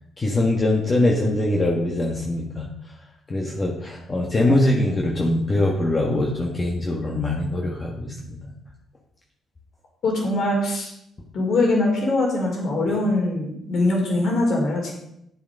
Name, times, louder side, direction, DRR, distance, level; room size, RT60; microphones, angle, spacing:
voice 1, 0.2-2.7 3.3-8.4 12.9-13.0, left 1 dB, 30° left, -1 dB, 1.5 m, -22 dB
voice 2, 10.0-10.9 11.3-14.9, left 2 dB, 65° left, -1 dB, 4.2 m, -22 dB
10.0 x 7.2 x 5.3 m, 0.78 s
cardioid pair, 90°, 0 cm